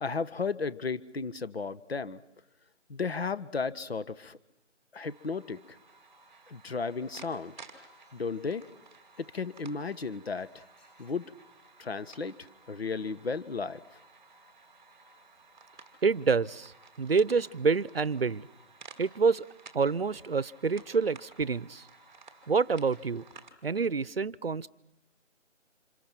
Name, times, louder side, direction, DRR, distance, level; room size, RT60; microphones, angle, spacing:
voice 1, 0.0-2.2 2.9-4.4 4.9-5.8 6.5-7.5 8.1-8.7 9.2-10.6 11.0-11.3 11.8-13.8, left 4 dB, 55° left, 14 dB, 1.3 m, -34 dB
sound 1, 4.9-23.5, right 4 dB, 5° right, 1.3 m, -55 dB
voice 2, 16.0-16.7 17.0-18.5 19.0-19.5 19.7-21.9 22.5-23.2 23.6-24.7, right 5 dB, 50° right, 21 dB, 0.9 m, -27 dB
29.5 x 27.5 x 6.1 m, 0.86 s
figure-of-eight pair, 170°, 37 cm